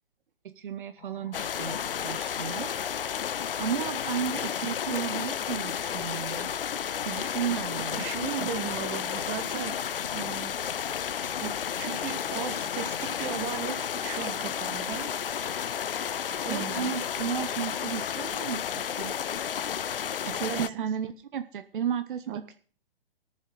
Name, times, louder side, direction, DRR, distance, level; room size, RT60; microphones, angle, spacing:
voice 1, 0.4-2.7 3.6-6.5 7.0-8.1 8.4-8.5 16.5-19.1 20.2-22.5, right 8 dB, 60° right, 10 dB, 1.0 m, -34 dB
sound 1, 1.0-17.8, left 3 dB, 40° left, 3.7 m, -49 dB
sound 2, 1.3-20.7, left 8 dB, 70° left, 0.5 m, -32 dB
voice 2, 7.9-9.7 10.1-10.6 11.4-15.1 16.4-16.9 20.5-20.8 22.3-22.5, right 9 dB, 25° right, 7 dB, 1.5 m, -36 dB
21.5 x 7.3 x 3.9 m, 0.42 s
figure-of-eight pair, 125°, 29 cm